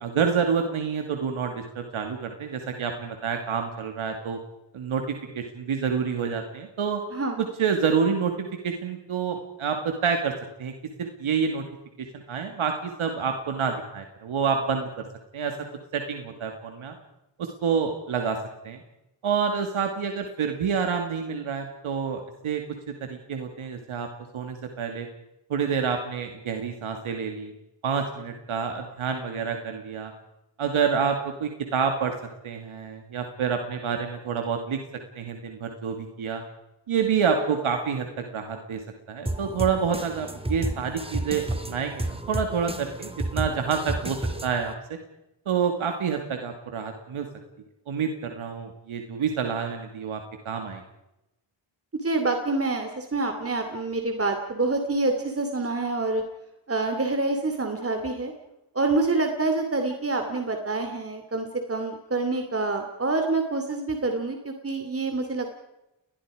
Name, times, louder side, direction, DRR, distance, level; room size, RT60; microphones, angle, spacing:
voice 1, 0.0-4.4 4.7-7.0 7.4-10.3 10.6-10.7 11.0-11.6 12.0-15.0 15.3-15.6 15.9-17.0 17.4-18.4 18.6-18.8 19.2-22.6 23.0-24.1 24.3-25.1 25.5-27.5 27.8-30.1 30.6-32.1 32.4-34.8 35.2-36.4 36.9-38.8 39.1-44.7 45.5-47.3 47.9-50.8, right 6 dB, 85° right, 4 dB, 2.4 m, -28 dB
sound 1, 39.3-44.7, right 1 dB, 10° right, 2.3 m, -32 dB
voice 2, 52.0-56.2 56.7-58.3 58.7-65.6, right 3 dB, 30° right, 5 dB, 2.7 m, -27 dB
30.0 x 20.5 x 5.0 m, 0.92 s
cardioid pair, 75°, 48 cm